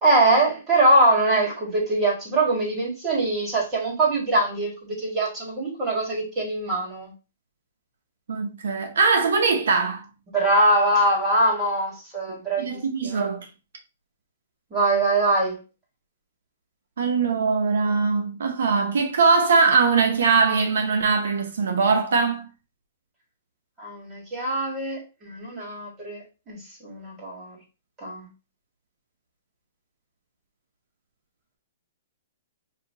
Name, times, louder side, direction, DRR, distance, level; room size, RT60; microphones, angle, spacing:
voice 1, 0.0-7.1 10.3-13.2 14.7-15.6 23.8-27.6 28.0-28.3, right 2 dB, 20° right, 1.9 m, -23 dB
voice 2, 8.3-10.0 12.6-13.5 17.0-22.5, right 4 dB, 80° right, 0.8 m, -21 dB
5.4 x 2.7 x 2.8 m
hypercardioid pair, 155°, 0 cm